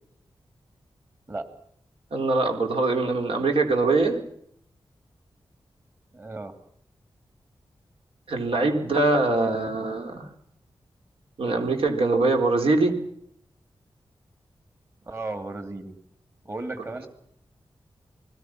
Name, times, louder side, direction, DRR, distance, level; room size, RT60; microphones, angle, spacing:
voice 1, 2.1-4.2 8.3-10.3 11.4-12.9, right 3 dB, 80° right, 4 dB, 4.3 m, -23 dB
voice 2, 6.1-6.5 15.0-15.9 16.4-17.1, right 2 dB, 25° right, 8 dB, 2.9 m, -34 dB
29.5 x 20.5 x 6.2 m, 0.69 s
wide cardioid pair, 135°, 9 cm